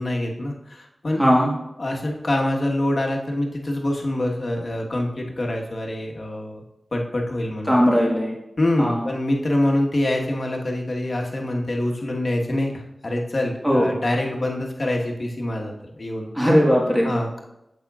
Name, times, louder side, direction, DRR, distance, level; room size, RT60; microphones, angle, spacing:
voice 1, 0.0-1.2 1.8-6.6 6.9-8.0 8.6-16.3 17.0-17.4, left 1 dB, 60° left, 0 dB, 1.4 m, -25 dB
voice 2, 1.2-1.5 7.7-8.3 8.8-9.0 13.6-14.0 16.3-17.1, equal, 5° right, -4 dB, 1.7 m, -18 dB
8.9 x 7.4 x 2.4 m, 0.88 s
wide cardioid pair, 55°, 0 cm